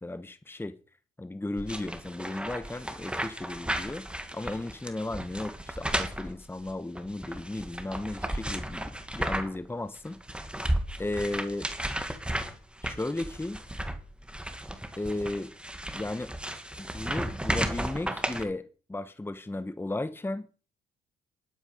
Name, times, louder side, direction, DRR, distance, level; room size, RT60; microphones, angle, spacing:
voice 1, 0.0-0.7 1.2-4.1 4.3-10.2 11.0-11.7 12.8-13.6 15.0-15.5 15.9-16.3 16.8-20.5, left 2 dB, 10° left, 1.1 m, -35 dB
sound 1, 1.6-9.7 10.0-18.4, right 1 dB, 5° right, 2.0 m, -34 dB
11.5 x 11.0 x 5.3 m
cardioid pair, 90°, 20 cm